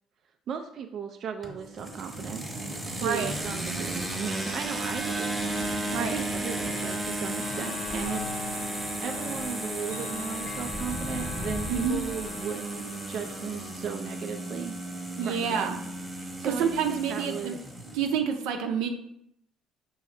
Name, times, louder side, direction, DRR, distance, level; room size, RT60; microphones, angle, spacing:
voice 1, 0.5-2.6 2.9-5.7 6.0-8.5 9.0-14.7 15.2-15.8 16.4-17.6, right 7 dB, 50° right, 5 dB, 0.3 m, -36 dB
sound 1, 1.4-18.2, right 1 dB, 5° right, 0.9 m, -34 dB
voice 2, 3.0-3.3 5.9-6.2 11.7-12.0 15.2-15.8 16.4-17.6 17.9-18.9, right 7 dB, 90° right, 5 dB, 0.6 m, -28 dB
Chime / Clock, 5.9-16.7, left 5 dB, 85° left, 0.8 m, -45 dB
sound 2, 7.9-8.8 9.4-9.5 10.1-12.5, left 2 dB, 25° left, 0.4 m, -39 dB
5.7 x 2.7 x 3.2 m, 0.75 s
cardioid pair, 125°, 0 cm